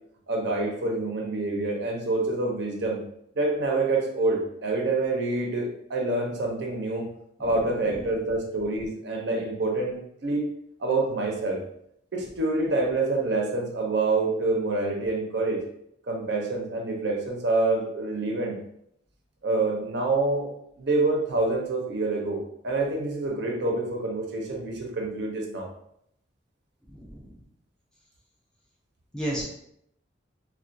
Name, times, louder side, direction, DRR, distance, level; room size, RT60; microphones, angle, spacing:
voice 1, 0.3-3.0 3.4-7.1 7.4-10.5 10.8-11.6 12.1-15.6 16.1-18.5 19.4-20.5 20.8-25.7, right 2 dB, 60° right, 0 dB, 0.5 m, -27 dB
voice 2, 26.9-27.3 29.1-29.4, right 1 dB, 5° left, -5 dB, 0.4 m, -33 dB
2.3 x 2.1 x 2.5 m, 0.74 s
head